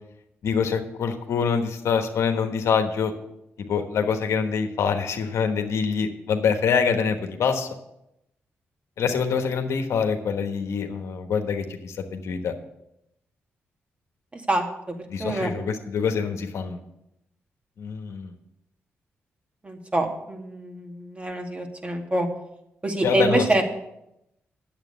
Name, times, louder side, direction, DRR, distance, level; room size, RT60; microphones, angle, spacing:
voice 1, 0.4-3.1 3.7-7.7 9.0-12.5 15.1-16.8 17.8-18.3 23.0-23.5, left 6 dB, 75° left, 5 dB, 1.3 m, -25 dB
voice 2, 14.3-15.5 19.6-22.3 22.8-23.6, right 1 dB, 25° right, 3 dB, 2.3 m, -26 dB
9.1 x 7.9 x 7.0 m, 0.83 s
supercardioid pair, 50°, 5 cm